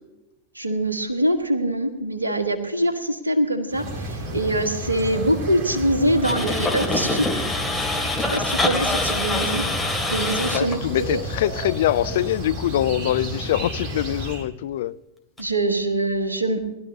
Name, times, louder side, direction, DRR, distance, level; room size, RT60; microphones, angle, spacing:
voice 1, 0.5-7.4 8.3-9.6 10.1-11.2 15.4-16.6, right 1 dB, 80° right, 1.3 m, -24 dB
sound 1, 3.7-14.5, equal, 40° right, 2.5 m, -31 dB
sound 2, 6.2-10.8 15.4-15.5, left 2 dB, 5° left, 2.4 m, -25 dB
voice 2, 10.5-15.0, left 13 dB, 55° left, 0.4 m, -24 dB
19.5 x 12.0 x 2.8 m
figure-of-eight pair, 90°, 0 cm